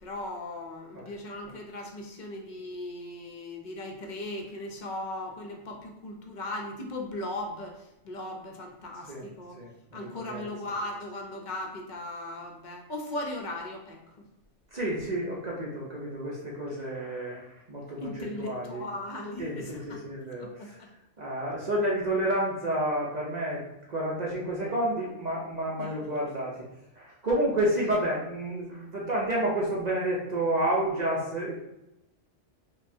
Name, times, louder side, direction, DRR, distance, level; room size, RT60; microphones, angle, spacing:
voice 1, 0.0-9.6 9.9-14.2 18.0-20.0 20.4-20.9 25.8-25.9, left 1 dB, 50° left, 1 dB, 0.6 m, -38 dB
voice 2, 10.1-10.4 14.7-18.8 19.4-20.7 21.2-23.6 23.9-26.6 27.0-31.6, right 1 dB, 45° right, -4 dB, 0.7 m, -30 dB
5.3 x 2.3 x 2.6 m, 0.90 s
omnidirectional pair, 1.2 m